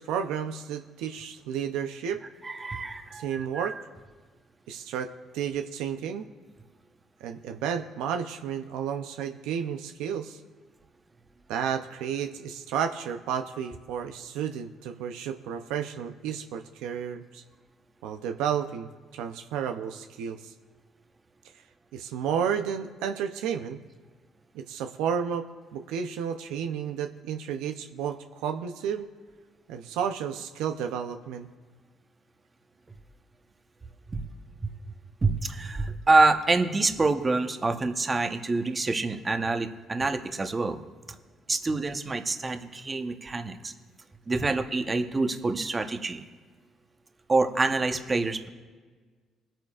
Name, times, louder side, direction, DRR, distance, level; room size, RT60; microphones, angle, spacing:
voice 1, 0.0-2.2 3.1-3.8 4.7-6.2 7.2-10.4 11.5-17.4 18.0-20.5 21.9-23.8 24.5-29.1 29.7-31.5, right 8 dB, 90° right, 6 dB, 0.6 m, -32 dB
voice 2, 2.4-3.8 34.1-34.2 35.2-40.8 41.5-43.7 44.3-46.2 47.3-48.5, right 3 dB, 25° right, 5 dB, 1.0 m, -26 dB
21.5 x 9.0 x 2.4 m, 1.5 s
cardioid pair, 85°, 0 cm